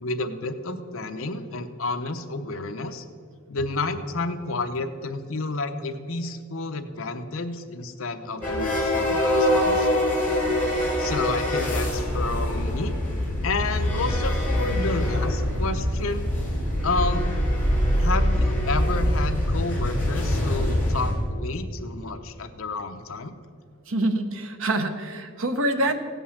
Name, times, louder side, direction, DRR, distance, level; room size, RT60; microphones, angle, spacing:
voice 1, 0.0-3.0 3.5-10.0 11.0-16.3 16.8-17.3 18.0-23.3, left 3 dB, 70° left, 8 dB, 0.8 m, -30 dB
sound 1, 8.4-21.1, left 1 dB, 10° left, 2.7 m, -24 dB
voice 2, 23.9-25.9, right 1 dB, 65° right, 7 dB, 0.9 m, -25 dB
16.0 x 5.4 x 7.2 m, 2.1 s
head